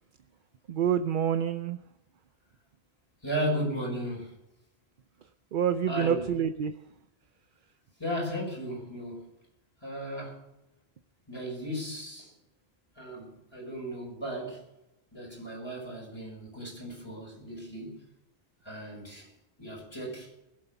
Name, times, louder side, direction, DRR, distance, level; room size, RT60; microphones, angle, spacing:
voice 1, 0.7-1.8 5.5-6.7, right 8 dB, 55° right, 11 dB, 0.7 m, -27 dB
voice 2, 3.2-4.4 5.9-6.4 8.0-9.3 9.8-10.4 11.3-12.3 13.0-14.6 15.1-18.0 18.6-19.3 19.6-20.3, equal, 25° left, -3 dB, 5.7 m, -35 dB
21.0 x 8.0 x 6.9 m, 0.93 s
omnidirectional pair, 1.1 m